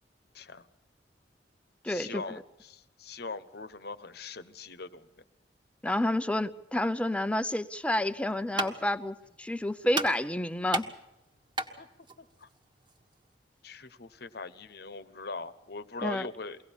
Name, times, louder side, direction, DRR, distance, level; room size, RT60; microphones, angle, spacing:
voice 1, 0.3-0.7 1.9-5.1 11.8-11.9 12.2-12.5 13.6-16.6, left 3 dB, 60° left, 12 dB, 1.1 m, -41 dB
voice 2, 1.8-2.4 5.8-10.9 16.0-16.3, left 1 dB, 5° left, 10 dB, 0.7 m, -29 dB
sound 1, 8.0-13.3, right 1 dB, 25° right, 1.6 m, -37 dB
23.5 x 17.5 x 7.3 m, 0.89 s
head